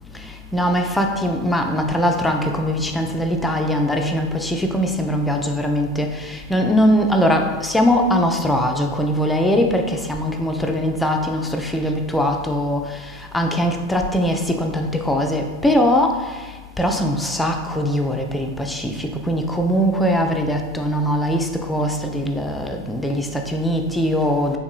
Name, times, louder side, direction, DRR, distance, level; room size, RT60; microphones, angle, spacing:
voice 1, 0.1-24.6, equal, 5° left, 3 dB, 0.3 m, -21 dB
3.6 x 2.9 x 2.3 m, 1.3 s
figure-of-eight pair, 90°, 0 cm